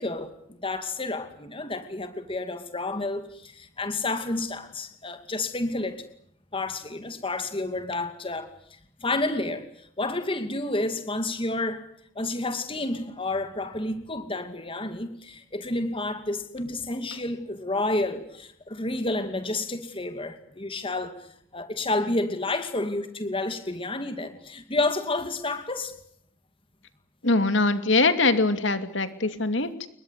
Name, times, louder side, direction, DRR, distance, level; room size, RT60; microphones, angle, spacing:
voice 1, 0.0-6.0 6.5-11.9 12.2-25.9, left 2 dB, 25° left, 8 dB, 2.5 m, -30 dB
voice 2, 27.2-29.9, left 3 dB, 65° left, 10 dB, 2.7 m, -23 dB
29.0 x 23.0 x 8.3 m, 0.68 s
head